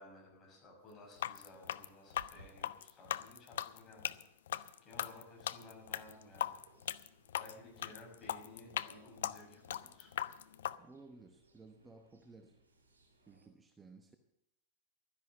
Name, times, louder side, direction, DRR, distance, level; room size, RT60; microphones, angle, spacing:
voice 1, 0.0-4.2 4.8-6.6 7.4-10.1, left 2 dB, 30° left, -2 dB, 6.5 m, -56 dB
sound 1, 1.1-10.8, left 11 dB, 60° left, 0.4 m, -39 dB
sound 2, 2.2-2.6, equal, 90° left, 2.4 m, -54 dB
sound 3, 5.6-13.5, right 2 dB, 70° right, 3.0 m, -68 dB
voice 2, 10.8-12.6 13.3-14.2, right 3 dB, 15° right, 7 dB, 1.0 m, -57 dB
12.5 x 10.5 x 7.2 m, 0.81 s
figure-of-eight pair, 90°, 0 cm